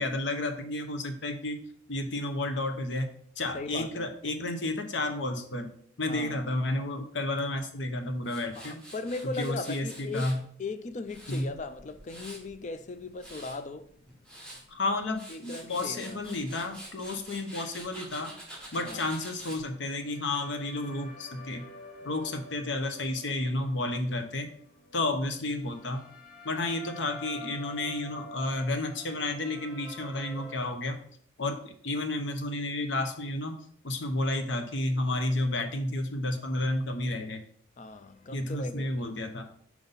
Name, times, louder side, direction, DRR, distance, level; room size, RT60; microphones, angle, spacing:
voice 1, 0.0-1.6 1.9-3.1 3.4-5.7 6.0-8.8 9.2-10.4 11.3-11.5 14.7-18.3 18.7-21.6 22.0-24.5 24.9-26.0 26.4-31.0 31.4-33.6 33.8-37.4 38.3-39.4, left 2 dB, 75° left, 0.8 m, -31 dB
voice 2, 3.5-4.1 6.1-6.5 8.5-10.3 10.6-13.9 15.3-16.2 18.8-19.0 37.8-39.1, left 3 dB, 40° left, 0.4 m, -38 dB
Tools, 8.2-10.4 10.9-12.5 13.0-13.6 14.1-14.6 15.0-19.6, right 1 dB, 5° left, 1.4 m, -46 dB
sound 1, 19.8-30.5, left 3 dB, 60° left, 1.4 m, -48 dB
5.4 x 4.6 x 4.0 m
head